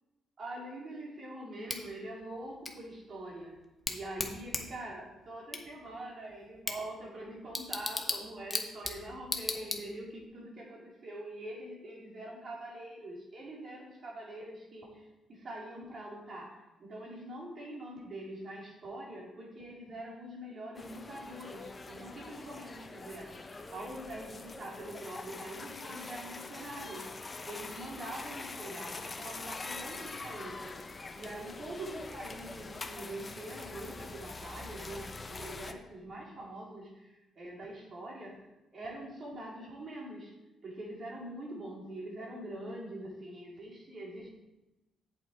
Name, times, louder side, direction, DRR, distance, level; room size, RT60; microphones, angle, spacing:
voice 1, 0.4-3.6 3.9-27.1 27.5-30.8 31.1-38.4 38.7-40.3 40.6-44.3, right 1 dB, 45° right, -3 dB, 3.4 m, -44 dB
Bicycle / Tick, 1.7-10.3, left 2 dB, 10° left, 1.3 m, -39 dB
sound 1, 20.7-35.7, left 3 dB, 30° left, 0.8 m, -44 dB
8.2 x 7.7 x 4.5 m, 1.0 s
cardioid pair, 90°, 0 cm